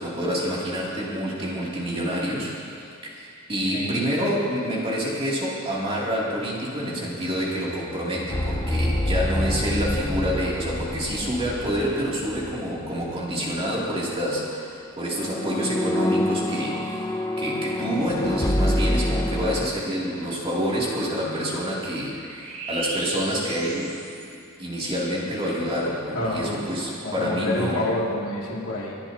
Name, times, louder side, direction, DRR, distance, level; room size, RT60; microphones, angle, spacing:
voice 1, 0.0-24.0 24.6-27.8, equal, 25° right, -6 dB, 2.8 m, -27 dB
voice 2, 3.7-4.0 26.1-26.6 27.0-29.0, left 1 dB, 85° left, -4 dB, 2.6 m, -28 dB
sound 1, 6.0-12.0 12.6-24.7, right 1 dB, 85° right, 3.1 m, -42 dB
sound 2, 8.3-13.2 13.4-13.7 15.1-19.7, left 1 dB, 15° left, 0.7 m, -27 dB
26.0 x 11.0 x 2.9 m, 2.5 s
head